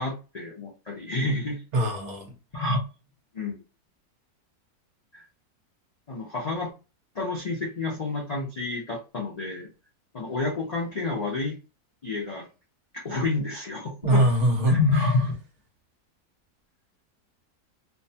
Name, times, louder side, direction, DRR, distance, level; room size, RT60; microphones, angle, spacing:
voice 1, 0.0-1.6 2.5-2.8 3.3-3.6 5.1-5.2 6.1-6.7 7.1-9.7 10.1-11.6 12.0-12.5 12.9-14.2 14.7-15.3, left 3 dB, 70° left, 0.3 m, -28 dB
voice 2, 1.7-2.4 14.0-14.8, right 1 dB, 55° right, 0.9 m, -22 dB
2.7 x 2.1 x 2.7 m
omnidirectional pair, 1.7 m